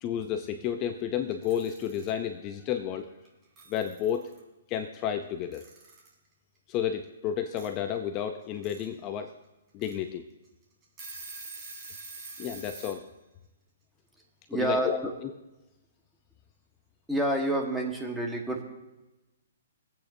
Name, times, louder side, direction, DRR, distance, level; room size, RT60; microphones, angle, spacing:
voice 1, 0.0-3.1 3.7-4.3 4.7-5.6 6.7-9.3 9.7-10.2 12.4-13.0 14.5-15.0, left 9 dB, 25° left, 7 dB, 0.6 m, -31 dB
Alarm / Clock, 1.3-2.1 3.2-3.3 3.6-4.4 5.5-6.1 7.6-7.7 8.4-8.8 9.3-9.4 9.8-9.9 10.5-10.6 10.8-13.0, right 3 dB, 20° right, 3.0 m, -45 dB
voice 2, 14.5-15.1 17.1-18.6, right 1 dB, ahead, 0 dB, 1.4 m, -28 dB
25.5 x 8.6 x 2.7 m, 1.0 s
hypercardioid pair, 150°, 0 cm